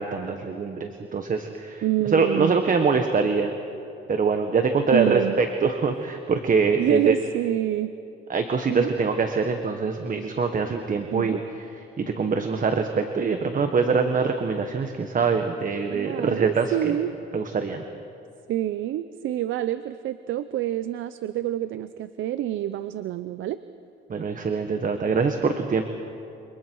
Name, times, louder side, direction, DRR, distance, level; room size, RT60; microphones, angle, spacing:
voice 1, 0.0-1.8 2.1-3.5 4.1-7.1 8.3-11.4 12.0-16.9 17.3-17.8 24.1-25.8, right 5 dB, 40° right, 6 dB, 1.5 m, -24 dB
voice 2, 1.8-2.6 4.9-5.4 6.8-7.9 8.7-8.9 11.1-11.5 15.9-17.2 18.5-23.6, right 13 dB, 80° right, 13 dB, 0.7 m, -27 dB
28.0 x 26.0 x 4.8 m, 2.8 s
cardioid pair, 90°, 20 cm